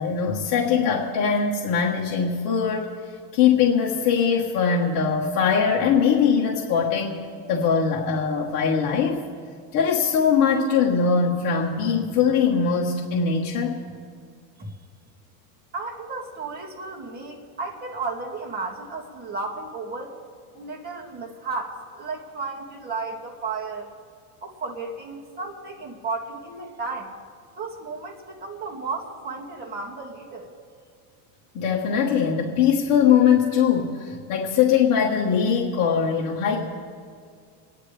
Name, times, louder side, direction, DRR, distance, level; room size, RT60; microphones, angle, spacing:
voice 1, 0.0-2.9 3.3-9.2 9.7-13.8 31.5-36.6, left 6 dB, 45° left, -2 dB, 1.4 m, -21 dB
voice 2, 15.7-20.2 20.6-23.9 24.4-27.1 27.6-30.5, right 3 dB, 20° right, -2 dB, 2.1 m, -33 dB
29.0 x 10.0 x 3.3 m, 2.2 s
cardioid pair, 160°, 48 cm